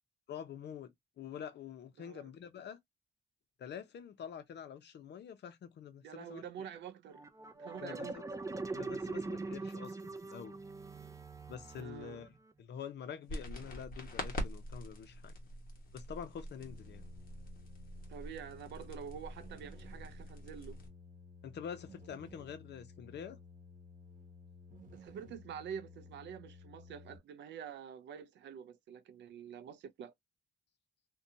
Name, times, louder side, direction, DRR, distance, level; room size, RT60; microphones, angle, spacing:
voice 1, 0.3-2.8 3.6-6.4 7.8-8.2 8.7-10.6 11.5-12.3 12.6-15.3 15.9-17.0 21.4-23.4, left 8 dB, 70° left, 0.6 m, -46 dB
voice 2, 2.0-2.3 6.0-7.3 7.6-8.4 11.8-12.2 18.1-20.8 24.9-30.1, right 8 dB, 80° right, 0.4 m, -47 dB
sound 1, 7.1-12.5, right 3 dB, 20° right, 0.4 m, -42 dB
sound 2, 13.3-20.9, left 1 dB, 55° left, 1.1 m, -45 dB
sound 3, 16.6-27.2, left 3 dB, 50° right, 0.9 m, -55 dB
2.6 x 2.2 x 2.6 m
cardioid pair, 95°, 18 cm